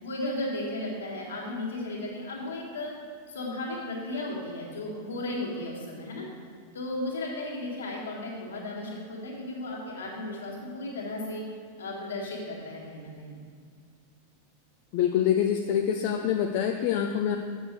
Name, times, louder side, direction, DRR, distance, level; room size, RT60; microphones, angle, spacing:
voice 1, 0.0-2.9 3.3-6.3 6.7-11.4 11.8-13.4, left 1 dB, 65° left, -3 dB, 2.0 m, -35 dB
voice 2, 14.9-17.4, left 9 dB, 45° left, 4 dB, 0.5 m, -25 dB
7.7 x 6.2 x 6.3 m, 2.1 s
figure-of-eight pair, 90°, 0 cm